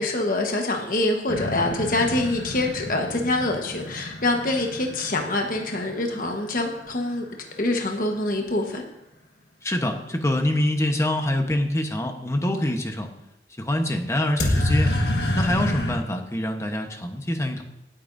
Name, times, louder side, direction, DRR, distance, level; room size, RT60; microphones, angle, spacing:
voice 1, 0.0-7.2 7.6-8.8, left 2 dB, 50° left, 2 dB, 1.3 m, -25 dB
sound 1, 1.3-7.0 14.4-16.0, left 1 dB, 65° left, 1.6 m, -28 dB
voice 2, 9.6-13.1 13.6-14.9 15.3-17.6, left 1 dB, 15° left, 4 dB, 1.0 m, -25 dB
19.0 x 8.7 x 2.7 m, 0.86 s
head